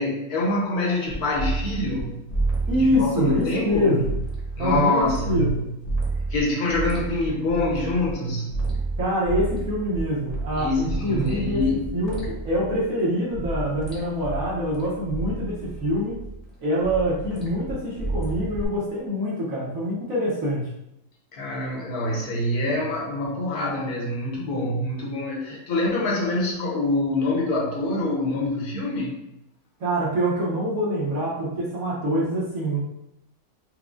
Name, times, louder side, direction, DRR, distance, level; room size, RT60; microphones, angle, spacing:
voice 1, 0.0-2.2 2.8-4.0 4.6-5.5 6.3-8.6 10.5-11.8 21.3-29.2, left 2 dB, 60° left, -3 dB, 1.4 m, -25 dB
sound 1, 1.1-2.0 2.3-5.5 5.8-8.1 8.5-12.9 13.3-16.4 16.8-18.6, right 3 dB, 25° left, 1.0 m, -30 dB
voice 2, 2.7-4.2 4.6-5.8 9.0-11.6 11.9-16.2 16.6-20.7 29.8-32.8, equal, 55° right, -6 dB, 1.3 m, -25 dB
4.8 x 2.2 x 3.7 m, 0.85 s
omnidirectional pair, 2.0 m